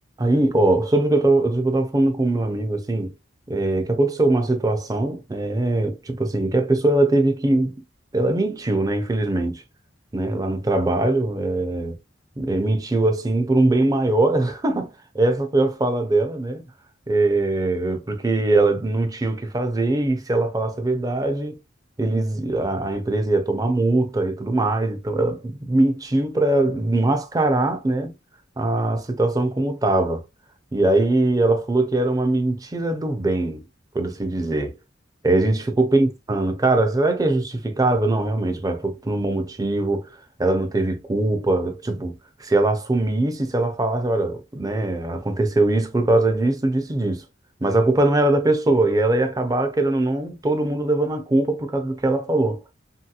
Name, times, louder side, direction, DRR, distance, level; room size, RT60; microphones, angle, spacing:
voice 1, 0.2-3.1 3.5-7.8 8.1-9.6 10.1-12.0 12.4-16.6 17.1-21.6 22.0-28.1 28.6-30.2 30.7-33.6 33.9-34.7 35.2-40.1 40.4-47.2 47.6-52.6, right 2 dB, 20° right, 0.5 m, -21 dB
3.0 x 2.8 x 2.3 m
head